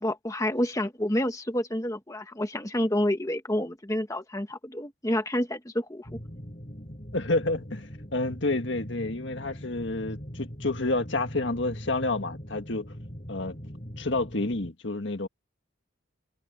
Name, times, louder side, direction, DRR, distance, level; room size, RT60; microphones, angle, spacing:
voice 1, 0.0-6.1, left 1 dB, 15° left, 1.4 m, -29 dB
sound 1, 6.0-14.7, equal, 35° left, 6.4 m, -41 dB
voice 2, 7.1-12.9 13.3-13.6 14.0-15.3, left 2 dB, 60° left, 1.8 m, -29 dB
head